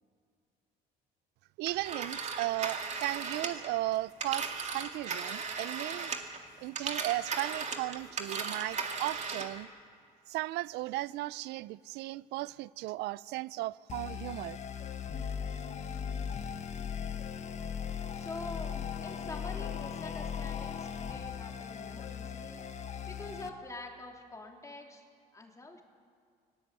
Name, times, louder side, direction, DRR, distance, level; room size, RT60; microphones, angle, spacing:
voice 1, 1.6-6.1 6.6-9.7 10.3-14.6, right 17 dB, 85° right, 0.5 m, -36 dB
Telephone, 1.7-6.4 6.7-9.6, right 5 dB, 40° right, 2.2 m, -37 dB
sound 1, 13.9-23.5, left 7 dB, 45° left, 1.3 m, -38 dB
voice 2, 18.1-18.8 19.0-22.6 23.1-25.0 25.3-25.8, left 2 dB, 20° left, 3.2 m, -45 dB
19.5 x 19.0 x 8.3 m
cardioid pair, 110°, 17 cm